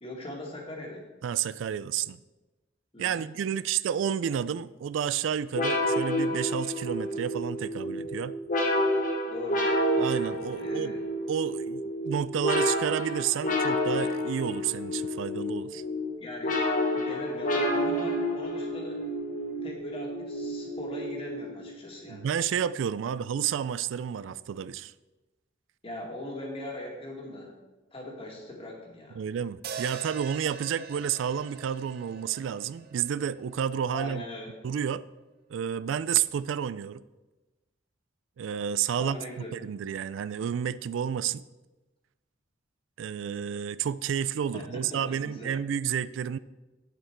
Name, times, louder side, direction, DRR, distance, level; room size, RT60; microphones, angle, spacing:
voice 1, 0.0-1.1 2.9-3.3 9.3-9.8 10.6-11.0 16.2-16.6 16.9-19.0 19.6-22.2 25.8-27.6 27.9-29.2 33.9-34.5 39.0-39.6 44.5-45.6, left 1 dB, 30° left, 2.0 m, -40 dB
voice 2, 1.2-2.2 3.0-8.3 10.0-10.9 11.3-15.8 22.1-24.9 29.2-34.2 34.6-35.0 35.5-37.0 38.4-39.2 39.5-41.4 43.0-46.4, right 8 dB, 90° right, 0.3 m, -30 dB
sound 1, 5.5-21.8, equal, 45° left, 1.3 m, -29 dB
sound 2, 29.6-33.9, right 6 dB, 55° right, 0.7 m, -43 dB
8.8 x 7.1 x 4.5 m
head